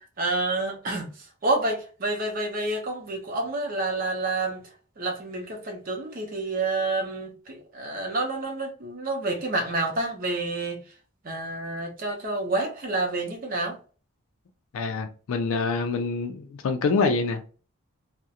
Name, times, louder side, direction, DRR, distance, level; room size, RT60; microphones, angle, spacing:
voice 1, 0.2-4.6 5.0-10.8 11.2-13.8, right 2 dB, 40° right, 0.6 m, -29 dB
voice 2, 14.7-17.5, left 4 dB, 80° left, 0.3 m, -26 dB
2.3 x 2.1 x 2.7 m
head